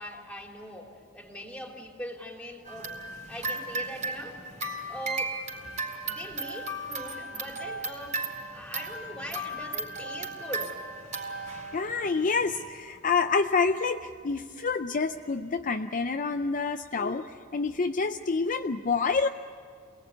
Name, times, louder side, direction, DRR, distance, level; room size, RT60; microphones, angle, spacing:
voice 1, 0.0-3.0 3.3-4.4 4.9-5.4 6.0-8.2 8.5-10.8, equal, 5° left, 1 dB, 3.2 m, -41 dB
sound 1, 2.6-12.6, right 2 dB, 35° right, 4.2 m, -36 dB
voice 2, 11.7-19.3, left 4 dB, 40° left, 7 dB, 0.5 m, -28 dB
27.5 x 19.0 x 9.5 m, 2.4 s
head